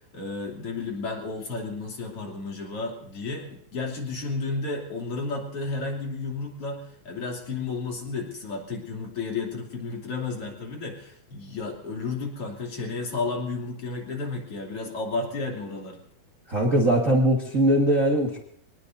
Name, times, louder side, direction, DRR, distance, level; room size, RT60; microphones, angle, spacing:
voice 1, 0.1-16.0, left 3 dB, 40° left, 0 dB, 3.6 m, -32 dB
voice 2, 16.5-18.4, right 1 dB, 60° right, -1 dB, 0.8 m, -21 dB
25.5 x 19.0 x 2.7 m, 0.64 s
omnidirectional pair, 4.3 m